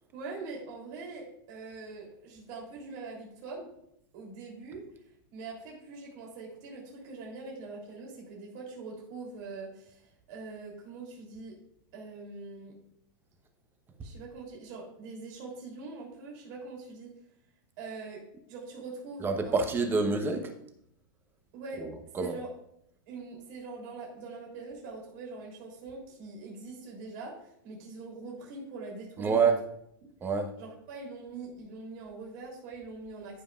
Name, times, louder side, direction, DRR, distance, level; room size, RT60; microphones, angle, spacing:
voice 1, 0.1-3.7 4.1-4.8 5.3-10.0 10.3-11.5 11.9-12.7 14.0-17.1 17.8-18.2 18.5-20.0 21.5-21.8 22.2-22.5 23.1-29.5 30.6-33.4, right 3 dB, 50° right, -2 dB, 3.5 m, -43 dB
voice 2, 19.2-20.5 21.8-22.3 29.2-29.6 30.2-30.5, right 4 dB, 20° right, 6 dB, 1.0 m, -27 dB
14.5 x 5.3 x 2.5 m, 0.75 s
hypercardioid pair, 140°, 12 cm